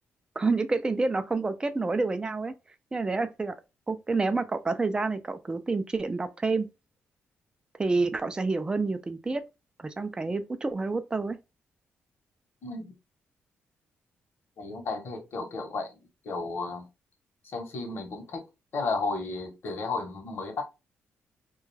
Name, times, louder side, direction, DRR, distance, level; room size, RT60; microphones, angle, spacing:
voice 1, 0.4-2.5 2.9-3.5 3.9-6.7 7.8-9.4 9.8-11.4, right 3 dB, 20° right, 0.4 m, -28 dB
voice 2, 12.6-12.9 14.6-15.9 16.2-16.8 17.4-18.4 18.7-20.6, left 3 dB, 55° left, 0.9 m, -33 dB
2.4 x 2.2 x 3.2 m
cardioid pair, 105°, 5 cm